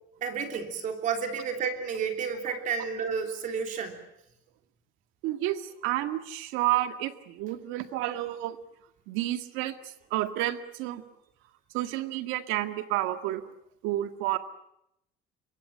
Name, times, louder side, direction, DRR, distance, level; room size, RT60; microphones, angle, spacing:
voice 1, 0.2-4.0, right 6 dB, 40° right, 5 dB, 3.3 m, -31 dB
voice 2, 5.2-8.6 9.1-9.8 10.1-11.0 11.7-13.5 13.8-14.4, right 15 dB, 85° right, 9 dB, 2.0 m, -30 dB
26.0 x 23.0 x 7.7 m, 0.80 s
cardioid pair, 175°, 20 cm